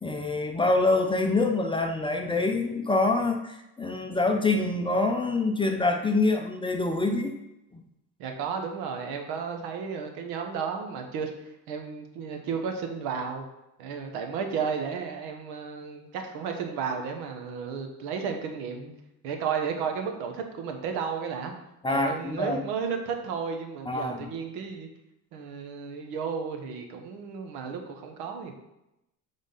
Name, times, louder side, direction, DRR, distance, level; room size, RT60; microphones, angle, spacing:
voice 1, 0.0-7.4 7.7-7.8 21.8-22.6 23.9-24.3, left 2 dB, 15° left, 3 dB, 0.5 m, -26 dB
voice 2, 8.2-11.3 11.7-13.4 13.8-18.9 19.2-21.5 21.9-24.9 25.3-28.5, right 6 dB, 80° right, 4 dB, 1.1 m, -33 dB
7.1 x 3.6 x 3.9 m, 0.88 s
cardioid pair, 110°, 39 cm